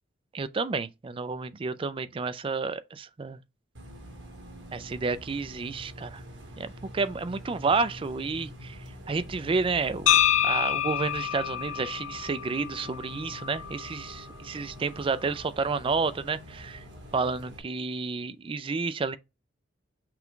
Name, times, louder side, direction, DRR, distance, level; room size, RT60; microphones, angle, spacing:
voice 1, 0.3-3.4 4.7-6.2 6.6-10.1 10.4-16.8 17.1-19.2, right 4 dB, 30° right, 0.4 m, -30 dB
Bus, 3.7-17.6, equal, 70° right, 1.5 m, -45 dB
sound 1, 10.1-14.1, left 11 dB, 90° left, 0.6 m, -27 dB
5.8 x 2.3 x 3.7 m
head